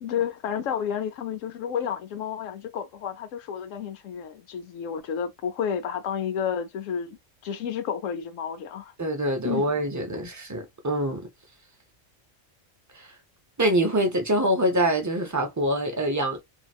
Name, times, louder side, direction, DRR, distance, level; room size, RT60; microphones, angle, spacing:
voice 1, 0.0-7.2 7.4-8.9 9.4-9.7, left 8 dB, 85° left, 1.0 m, -31 dB
voice 2, 9.0-11.3 12.9-13.1 13.6-16.4, right 1 dB, 25° right, 0.4 m, -25 dB
2.9 x 2.7 x 2.3 m
omnidirectional pair, 1.3 m